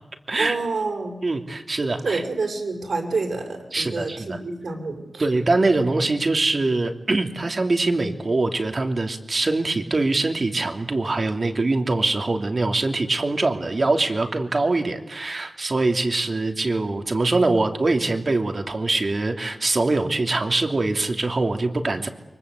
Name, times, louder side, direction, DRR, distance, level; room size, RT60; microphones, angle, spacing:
voice 1, 0.4-1.2 2.0-5.3, right 3 dB, 75° right, 4 dB, 6.6 m, -28 dB
voice 2, 1.2-2.2 3.7-4.4 5.2-22.1, right 2 dB, 50° right, 5 dB, 2.9 m, -23 dB
29.0 x 24.0 x 8.4 m, 1.0 s
wide cardioid pair, 70°, 0 cm